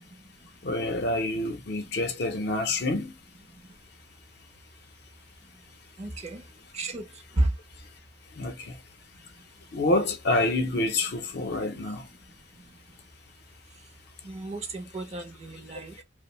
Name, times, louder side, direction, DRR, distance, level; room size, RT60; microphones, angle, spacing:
voice 1, 0.6-3.1 8.4-8.7 9.7-12.1, left 2 dB, 55° left, 0.5 m, -27 dB
voice 2, 6.0-6.4 6.7-7.1 7.3-7.5 14.2-16.0, right 1 dB, 35° right, 0.5 m, -31 dB
2.6 x 2.0 x 2.9 m
head